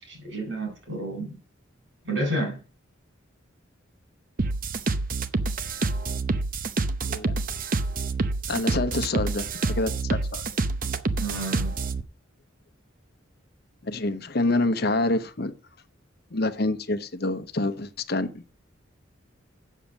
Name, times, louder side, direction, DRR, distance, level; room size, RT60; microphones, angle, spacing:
voice 1, 0.1-1.4 2.0-2.6 11.2-11.8, right 1 dB, 65° right, 4.7 m, -30 dB
sound 1, 4.4-12.0, right 3 dB, 45° right, 0.8 m, -27 dB
voice 2, 8.5-10.4 13.8-15.5 16.3-18.4, left 2 dB, 50° left, 0.9 m, -27 dB
8.4 x 7.1 x 7.3 m
head